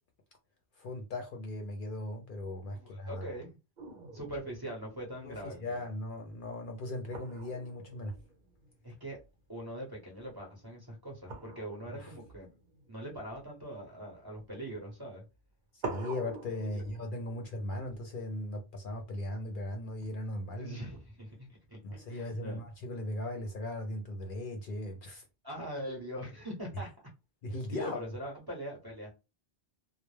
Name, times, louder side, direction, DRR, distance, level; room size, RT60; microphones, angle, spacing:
voice 1, 0.8-3.2 5.2-8.2 11.9-12.1 15.7-20.8 21.8-25.2 27.4-28.0, left 1 dB, 60° left, 0.6 m, -38 dB
voice 2, 2.7-3.6 4.1-5.9 8.8-9.2 9.5-12.5 12.9-15.2 16.7-16.8 20.6-22.6 25.4-26.9 27.7-29.1, equal, 25° right, 0.7 m, -42 dB
sound 1, 3.8-9.7 9.9-10.3 11.2-14.5 15.3-15.4 15.8-19.0 20.0-21.0, right 3 dB, 55° right, 0.9 m, -47 dB
2.2 x 2.0 x 3.1 m
omnidirectional pair, 1.1 m